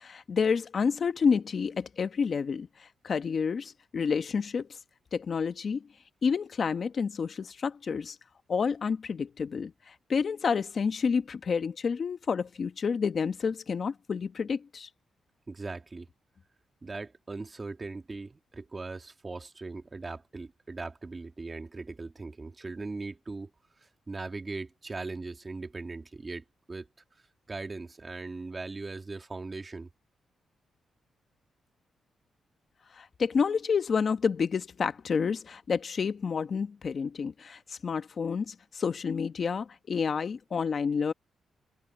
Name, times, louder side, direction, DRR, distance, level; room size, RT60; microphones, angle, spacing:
voice 1, 0.0-4.7 5.1-5.8 6.2-8.2 8.5-14.9 32.9-41.1, left 6 dB, 50° left, 1.1 m, -29 dB
voice 2, 15.5-16.1 16.8-23.5 23.8-26.9 27.5-29.9, right 3 dB, 25° right, 2.4 m, -39 dB
cardioid pair, 105°, 0 cm